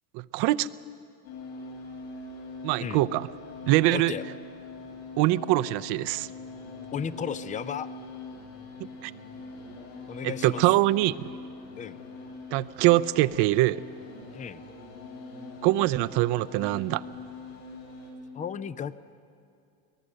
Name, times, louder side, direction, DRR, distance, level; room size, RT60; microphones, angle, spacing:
voice 1, 0.1-0.7 2.6-3.3 3.6-4.1 5.2-6.3 8.8-9.1 10.2-11.1 12.5-13.8 15.6-17.0, right 17 dB, 55° right, 16 dB, 0.7 m, -23 dB
sound 1, 1.2-18.1, left 3 dB, 85° left, 6.7 m, -43 dB
voice 2, 3.9-4.2 6.9-7.9 10.1-10.6 11.7-12.0 14.3-14.6 18.3-19.0, left 7 dB, 15° left, 15 dB, 0.4 m, -34 dB
23.5 x 19.0 x 6.5 m, 2.4 s
supercardioid pair, 110°, 48 cm